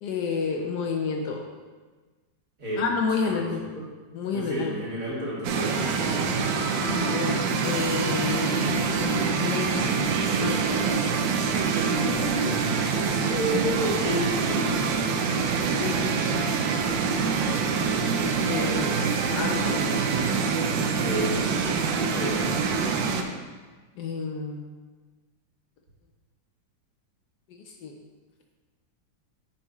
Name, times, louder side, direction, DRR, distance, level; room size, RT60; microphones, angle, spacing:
voice 1, 0.0-1.5 2.8-3.7 4.1-4.9 6.8-10.0 10.4-10.8 15.8-16.9 18.4-19.0 19.3-19.8 24.0-24.7 27.5-28.0, left 5 dB, 70° left, 2 dB, 1.1 m, -30 dB
voice 2, 4.3-6.3 11.9-14.9 21.0-21.4 22.1-22.9, equal, 45° right, -6 dB, 2.2 m, -31 dB
sound 1, 5.4-23.2, right 5 dB, 85° right, 1.3 m, -25 dB
9.6 x 4.7 x 3.0 m, 1.3 s
omnidirectional pair, 2.0 m